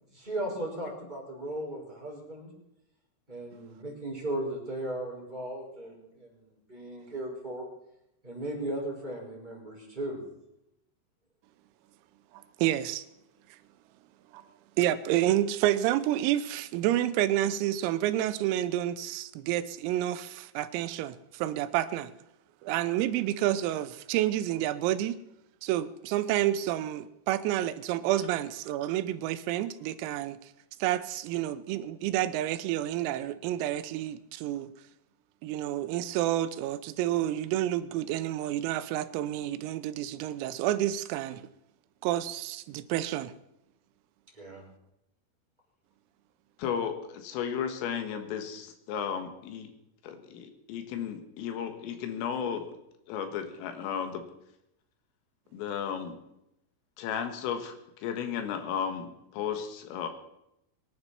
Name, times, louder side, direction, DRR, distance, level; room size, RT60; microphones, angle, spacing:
voice 1, 0.1-2.5 3.3-7.6 8.2-10.2 28.2-28.3 44.3-44.6, right 1 dB, 10° right, -3 dB, 5.2 m, -36 dB
voice 2, 12.6-13.1 14.3-14.4 14.8-22.1 22.6-25.2 25.6-30.5 30.8-34.7 35.4-41.4 42.0-43.3, right 13 dB, 85° right, 13 dB, 3.5 m, -29 dB
voice 3, 46.6-49.7 50.0-52.7 53.1-54.3 55.5-56.2 57.0-60.1, left 8 dB, 75° left, 7 dB, 4.1 m, -34 dB
24.5 x 11.0 x 4.4 m, 0.82 s
omnidirectional pair, 6.0 m